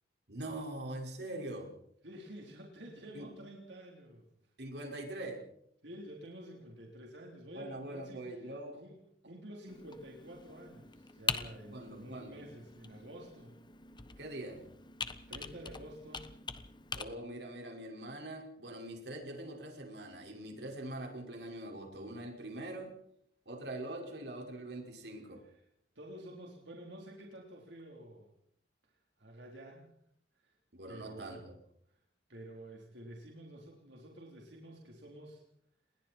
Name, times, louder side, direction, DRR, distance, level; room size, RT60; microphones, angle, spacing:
voice 1, 0.3-1.7 3.1-3.3 4.6-5.4 7.5-8.8 11.7-12.4 14.2-14.6 16.9-22.9 23.5-25.4 30.7-31.5, right 1 dB, 70° right, 1 dB, 5.5 m, -43 dB
voice 2, 2.0-4.3 5.8-9.0 9.2-13.6 15.3-16.3 25.4-25.6 26.0-28.3 28.9-29.9 30.4-30.6 30.9-31.5 31.9-32.0 32.3-35.4, right 1 dB, 90° right, -1 dB, 4.0 m, -50 dB
Computer keyboard, 9.7-17.0, left 5 dB, 25° left, 1.2 m, -43 dB
29.0 x 21.0 x 4.6 m, 0.72 s
head